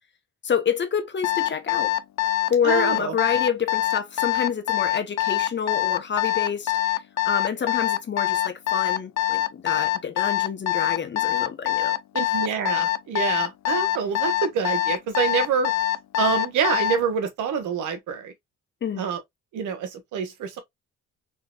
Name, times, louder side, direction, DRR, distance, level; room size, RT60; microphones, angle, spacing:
voice 1, 0.4-1.9 2.5-6.8 7.2-12.0 18.8-19.1, left 7 dB, 40° left, 0.9 m, -27 dB
Alarm, 1.2-17.0, left 15 dB, 65° left, 0.5 m, -24 dB
voice 2, 2.6-3.1 12.1-15.7 16.2-18.3 19.0-19.2 19.5-20.6, right 7 dB, 80° right, 1.1 m, -26 dB
3.7 x 3.0 x 2.4 m
cardioid pair, 90°, 30 cm